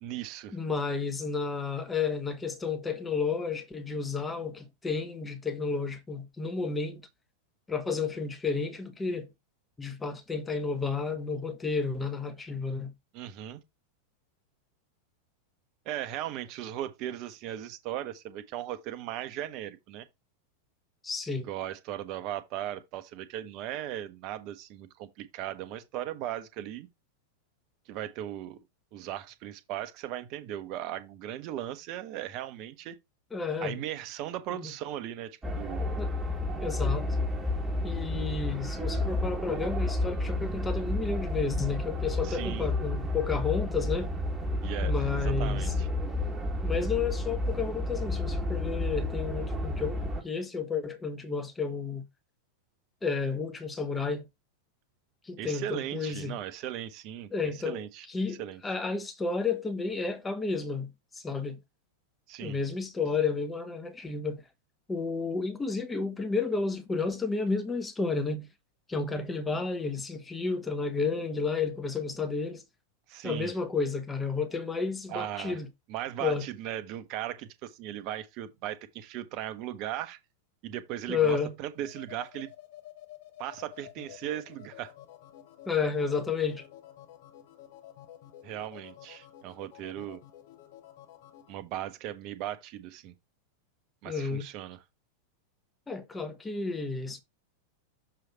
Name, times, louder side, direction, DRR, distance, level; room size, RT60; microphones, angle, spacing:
voice 1, 0.0-0.6 13.1-13.6 15.8-20.1 21.4-26.9 27.9-28.6 28.9-33.0 33.6-35.9 42.2-42.7 44.6-45.9 55.4-57.3 57.6-58.1 58.4-58.6 62.3-62.6 73.1-73.5 75.1-75.6 75.9-80.2 80.6-82.5 83.4-84.9 88.4-90.2 91.5-93.1 94.0-94.8, right 12 dB, 40° right, 0.9 m, -37 dB
voice 2, 0.5-7.0 7.7-9.3 9.8-12.9 21.0-21.5 33.3-33.8 34.5-34.7 36.0-36.1 36.6-37.1 37.8-44.1 44.8-45.7 46.6-52.0 53.0-54.3 55.2-56.4 57.3-57.8 58.1-61.6 62.4-64.4 64.9-68.5 68.9-72.6 73.2-75.7 76.2-76.4 81.1-81.5 85.7-86.6 94.1-94.4 95.9-97.2, left 4 dB, 10° left, 1.1 m, -31 dB
sound 1, 35.4-50.2, left 2 dB, 10° right, 1.4 m, -31 dB
sound 2, 81.7-91.5, left 12 dB, 50° left, 0.9 m, -51 dB
6.7 x 3.2 x 5.5 m
figure-of-eight pair, 90°, 0 cm